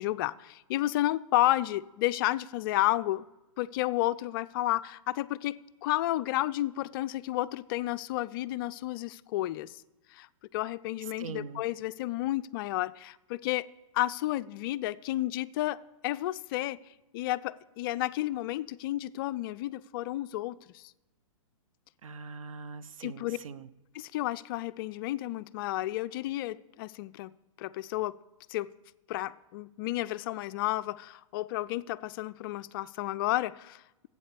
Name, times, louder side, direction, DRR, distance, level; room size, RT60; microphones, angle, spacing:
voice 1, 0.0-3.2 3.6-9.8 10.1-10.3 10.5-13.7 13.9-15.8 16.0-16.8 17.1-20.8 23.0-23.4 23.9-27.3 27.6-28.1 28.5-28.7 29.1-34.1, left 16 dB, 40° left, 16 dB, 0.4 m, -31 dB
voice 2, 11.2-11.6 22.0-23.7, right 5 dB, 75° right, 14 dB, 0.7 m, -42 dB
12.5 x 8.3 x 6.9 m, 1.0 s
hypercardioid pair, 120°, 17 cm